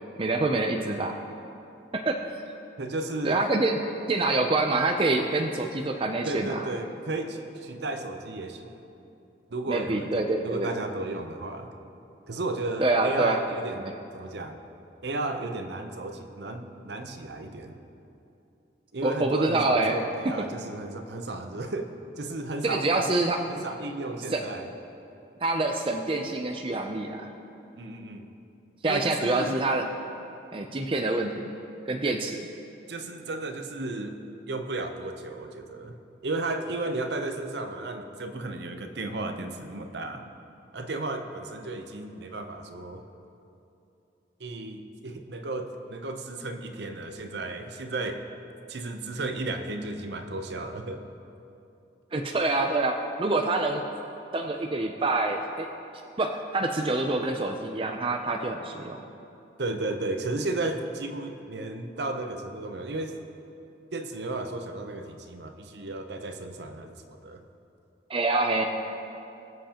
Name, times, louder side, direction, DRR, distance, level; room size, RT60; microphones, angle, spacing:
voice 1, 0.2-1.1 1.9-2.2 3.2-3.8 4.1-6.6 9.7-10.7 12.8-13.4 19.0-20.0 22.6-23.4 24.3-24.4 25.4-27.3 28.8-29.9 30.5-31.5 31.9-32.4 52.1-53.8 54.3-55.7 56.2-59.0 68.1-68.7, right 2 dB, 30° right, 3 dB, 0.4 m, -26 dB
voice 2, 2.8-3.4 6.2-8.8 9.5-11.7 12.3-13.9 14.1-14.6 15.0-17.8 18.9-23.1 23.5-24.7 27.8-28.3 28.8-29.6 32.9-34.2 34.5-36.0 36.2-40.2 40.7-43.0 44.4-48.2 48.7-51.0 59.6-63.2 63.9-67.4, right 2 dB, 65° right, 6 dB, 0.7 m, -34 dB
21.0 x 7.8 x 2.9 m, 2.8 s
head